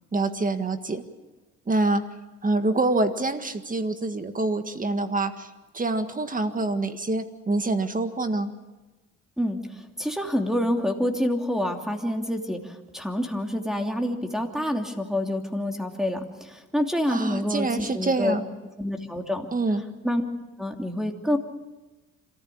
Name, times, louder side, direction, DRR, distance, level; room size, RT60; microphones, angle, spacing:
voice 1, 0.1-1.0 1.7-2.1 2.4-5.5 5.7-8.5 17.1-18.4 19.5-19.8, right 2 dB, 25° right, 8 dB, 1.8 m, -26 dB
voice 2, 9.4-18.3 18.8-19.5 20.0-20.2 20.6-21.4, left 1 dB, ahead, 3 dB, 2.9 m, -27 dB
26.5 x 14.5 x 8.6 m, 1.2 s
cardioid pair, 90°, 30 cm